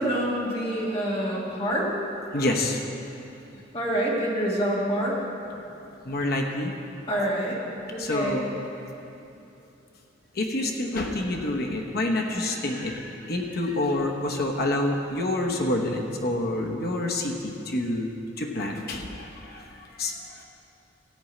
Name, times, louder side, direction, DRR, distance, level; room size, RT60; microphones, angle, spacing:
voice 1, 0.0-1.9 3.5-5.2 7.1-7.6 7.9-8.4, right 1 dB, 30° left, -5 dB, 2.2 m, -27 dB
voice 2, 2.3-2.8 6.0-6.8 8.0-8.4 10.3-18.1 18.4-20.4, left 1 dB, 50° left, 1 dB, 1.0 m, -28 dB
14.0 x 5.4 x 8.6 m, 2.9 s
head